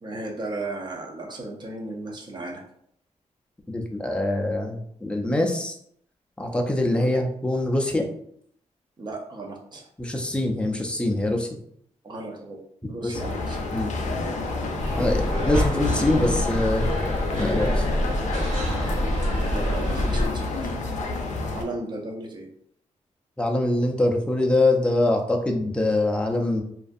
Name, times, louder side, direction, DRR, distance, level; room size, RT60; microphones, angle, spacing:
voice 1, 0.0-2.6 6.9-7.1 9.0-9.9 12.0-12.6 12.9-13.7 19.5-20.7 21.5-22.5, right 2 dB, 35° right, 0 dB, 0.6 m, -35 dB
voice 2, 3.7-5.8 6.4-8.1 10.0-11.6 13.0-13.2 13.7-13.9 15.0-16.9 17.4-18.1 23.4-26.6, left 1 dB, 10° left, 2 dB, 0.4 m, -24 dB
sound 1, 13.1-21.6, left 3 dB, 75° left, 0.4 m, -29 dB
sound 2, 14.8-20.3, equal, 80° right, 1.1 m, -26 dB
2.5 x 2.3 x 2.5 m, 0.69 s
wide cardioid pair, 130°, 12 cm